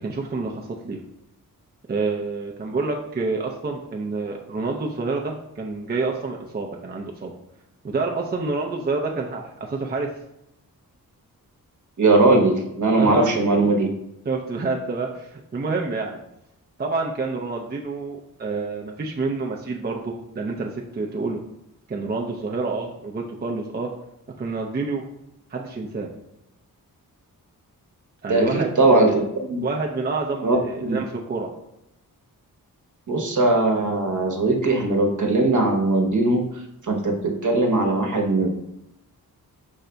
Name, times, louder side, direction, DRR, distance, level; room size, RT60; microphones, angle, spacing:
voice 1, 0.0-1.0 1.9-7.3 7.8-10.1 12.9-13.3 14.3-16.2 16.8-21.4 21.9-23.9 24.4-25.0 25.5-26.1 28.2-29.2 29.6-31.5, right 3 dB, 25° right, -1 dB, 0.5 m, -28 dB
voice 2, 12.0-13.9 28.3-29.6 30.4-31.0 33.1-36.4 36.9-38.5, right 2 dB, 50° right, 2 dB, 1.0 m, -20 dB
5.4 x 2.3 x 3.8 m, 0.83 s
cardioid pair, 65°, 37 cm